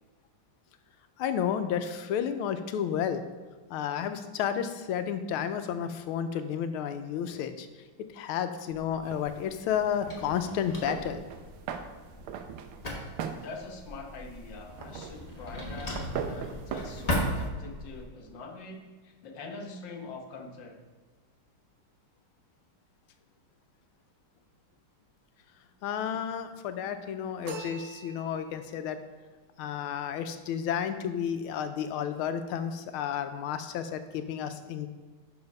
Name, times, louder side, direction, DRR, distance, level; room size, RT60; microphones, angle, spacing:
voice 1, 1.2-3.2 3.7-7.7 8.1-11.2 25.8-29.0 29.6-34.9, left 8 dB, 90° left, 9 dB, 1.5 m, -31 dB
Drawer open or close, 8.8-18.0, left 1 dB, 25° left, 1.0 m, -37 dB
sound 1, 9.0-17.5, right 7 dB, 85° right, 1.5 m, -41 dB
voice 2, 13.3-20.8, left 3 dB, 65° left, 3 dB, 1.6 m, -44 dB
sound 2, 27.4-28.7, right 2 dB, 50° right, 1.0 m, -43 dB
6.9 x 5.4 x 5.3 m, 1.4 s
omnidirectional pair, 2.3 m